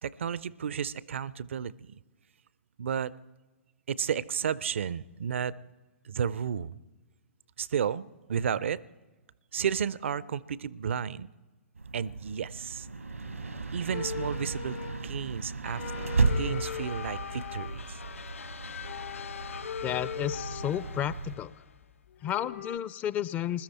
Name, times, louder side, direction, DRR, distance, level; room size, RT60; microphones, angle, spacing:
voice 1, 0.0-2.0 2.8-3.1 3.9-5.5 6.0-6.8 7.6-8.8 9.5-11.3 11.9-12.9 13.7-15.8 16.2-18.0, right 8 dB, 65° right, 20 dB, 0.4 m, -32 dB
sound 1, 11.7-21.4, right 4 dB, 90° right, 1.0 m, -34 dB
sound 2, 13.9-15.2 15.7-17.8 18.7-21.1 21.8-21.9 22.1-22.8, left 8 dB, 50° left, 0.9 m, -39 dB
sound 3, 15.6-21.9, left 5 dB, 75° left, 0.5 m, -46 dB
voice 2, 19.8-21.5 22.2-23.6, left 10 dB, 20° left, 18 dB, 0.4 m, -32 dB
20.5 x 13.0 x 4.2 m, 1.2 s
figure-of-eight pair, 115°, 7 cm